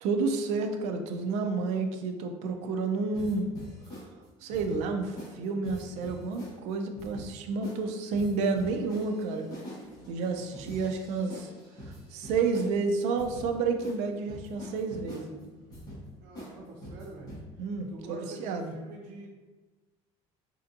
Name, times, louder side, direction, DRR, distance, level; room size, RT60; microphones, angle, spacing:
voice 1, 0.0-3.5 4.4-9.5 10.1-11.5 11.8-15.5 17.6-18.7, right 4 dB, 60° right, 6 dB, 0.4 m, -30 dB
sound 1, 3.1-4.1 4.5-4.9 5.2-5.4 5.6-6.5 7.0-7.3 7.6-7.8 8.1-12.7 13.2-13.5 13.8-14.0 14.3-15.2 15.7-16.0 16.4-16.5 16.8-17.4, equal, 30° left, 1.0 m, -44 dB
voice 2, 16.2-17.3 17.9-19.3, right 2 dB, 80° right, 0 dB, 0.7 m, -46 dB
3.3 x 2.6 x 2.6 m, 1.2 s
cardioid pair, 170°, 13 cm